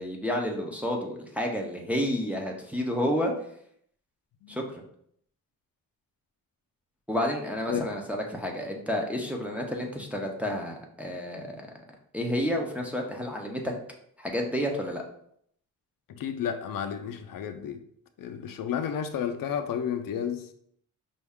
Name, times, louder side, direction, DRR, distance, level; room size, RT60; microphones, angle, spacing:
voice 1, 0.0-3.3 4.5-4.8 7.1-11.6 12.1-13.7 14.2-15.0, equal, 5° right, 0 dB, 0.4 m, -30 dB
voice 2, 16.1-17.8 18.2-20.5, left 8 dB, 70° left, 7 dB, 0.5 m, -32 dB
5.3 x 2.3 x 3.5 m, 0.68 s
wide cardioid pair, 170°, 35 cm